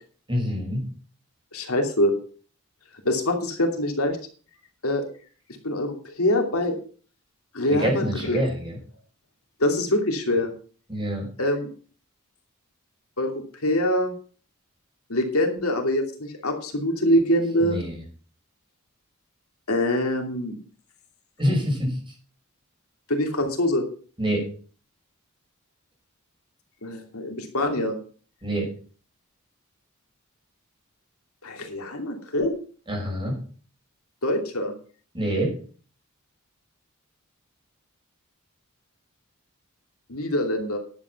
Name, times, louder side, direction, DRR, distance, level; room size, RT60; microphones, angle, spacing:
voice 1, 0.3-0.8 7.7-8.8 10.9-11.3 17.6-17.9 21.4-21.9 24.2-24.4 28.4-28.7 32.9-33.4 35.1-35.5, equal, 25° right, 0 dB, 5.5 m, -26 dB
voice 2, 1.5-2.1 3.0-4.2 4.8-5.0 5.6-6.8 7.5-8.4 9.6-10.5 11.4-11.7 13.2-13.3 13.6-14.1 15.1-17.8 19.7-20.6 23.1-23.8 26.8-27.9 31.4-32.5 34.2-34.7 40.1-40.8, left 1 dB, 80° left, 3 dB, 2.8 m, -24 dB
11.0 x 8.3 x 6.0 m, 0.41 s
head